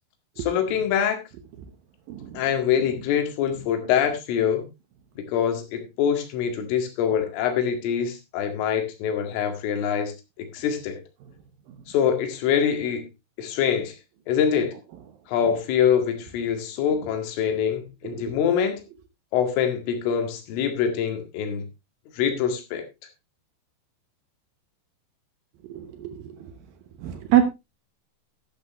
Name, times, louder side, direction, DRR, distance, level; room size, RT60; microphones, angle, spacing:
voice 1, 0.4-1.2 2.3-4.7 5.2-11.0 11.9-13.1 13.4-13.9 14.3-14.7 15.3-18.8 19.3-21.6 22.2-22.8, left 8 dB, 85° left, 6 dB, 4.6 m, -24 dB
voice 2, 2.1-2.4 17.5-17.7 18.0-18.4 25.7-26.5 27.0-27.4, right 11 dB, 80° right, 8 dB, 2.1 m, -25 dB
12.0 x 11.5 x 3.1 m, 0.24 s
omnidirectional pair, 5.6 m